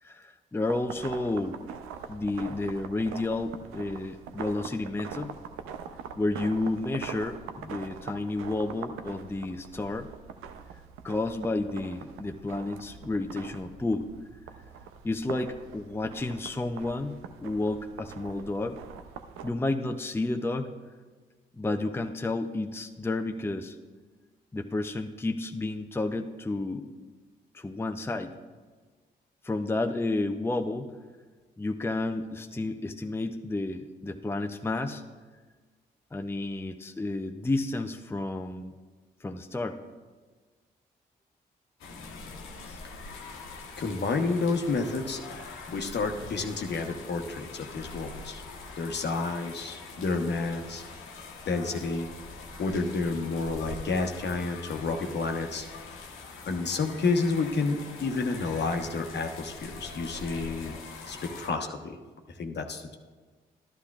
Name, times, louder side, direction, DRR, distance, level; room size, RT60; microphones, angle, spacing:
voice 1, 0.0-1.6 2.1-5.3 6.2-10.1 11.0-14.1 15.0-18.8 19.4-20.7 21.5-23.7 24.5-26.9 27.5-28.3 29.4-30.9 31.6-35.0 36.1-38.7 39.2-39.8 42.6-42.8, left 2 dB, 10° left, 6 dB, 0.6 m, -31 dB
sound 1, 0.7-19.5, right 7 dB, 80° right, 0.6 m, -43 dB
sound 2, 41.8-61.5, left 4 dB, 75° left, 1.2 m, -43 dB
voice 2, 43.8-45.4 45.7-48.4 48.8-50.8 51.5-52.1 52.6-55.7 56.5-60.8 61.0-62.0 62.4-63.0, left 3 dB, 55° left, 4 dB, 1.1 m, -30 dB
12.5 x 11.5 x 2.4 m, 1.4 s
hypercardioid pair, 45°, 21 cm